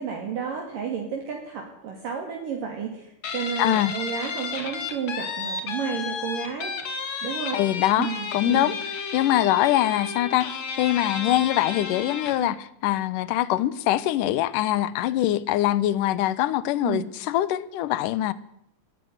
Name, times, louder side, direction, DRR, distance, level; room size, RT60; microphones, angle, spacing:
voice 1, 0.0-6.7 7.2-7.6 8.0-8.7 12.4-12.6 16.8-17.1, right 7 dB, 60° right, 4.0 m, -32 dB
Guitar, 3.2-12.5, left 5 dB, 50° left, 2.9 m, -32 dB
voice 2, 3.6-3.9 7.5-8.7 9.1-18.3, left 14 dB, 70° left, 2.1 m, -23 dB
19.5 x 15.5 x 9.6 m
omnidirectional pair, 4.7 m